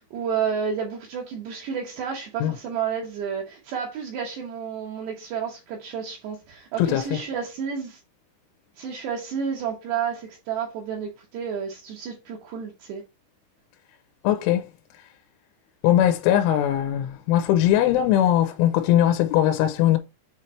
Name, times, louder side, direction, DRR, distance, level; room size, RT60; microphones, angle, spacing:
voice 1, 0.0-8.0 8.8-13.0, right 7 dB, 70° right, 2.8 m, -31 dB
voice 2, 6.8-7.2 14.2-14.7 15.8-20.0, left 11 dB, 85° left, 3.1 m, -20 dB
7.5 x 3.2 x 4.3 m
omnidirectional pair, 5.7 m